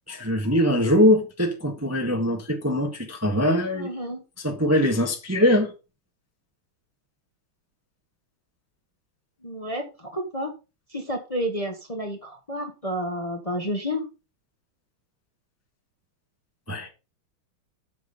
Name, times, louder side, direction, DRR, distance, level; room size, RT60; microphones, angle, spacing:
voice 1, 0.1-3.9 4.4-5.7 16.7-16.9, left 1 dB, 10° right, 1.1 m, -22 dB
voice 2, 3.7-4.2 9.4-10.5 10.9-14.1, equal, 20° left, 1.2 m, -30 dB
7.7 x 6.1 x 5.1 m
omnidirectional pair, 2.3 m